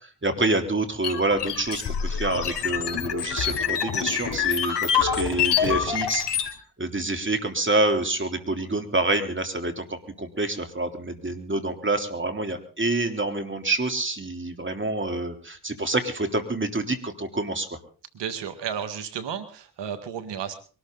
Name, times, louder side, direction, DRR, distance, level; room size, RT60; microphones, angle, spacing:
voice 1, 0.2-6.4 6.8-17.7, right 2 dB, 30° right, 6 dB, 3.6 m, -27 dB
sound 1, 1.0-6.5, left 8 dB, 75° left, 3.8 m, -26 dB
voice 2, 18.1-20.5, right 8 dB, 85° right, 11 dB, 1.8 m, -33 dB
23.0 x 13.0 x 4.0 m, 0.40 s
supercardioid pair, 45°, 42 cm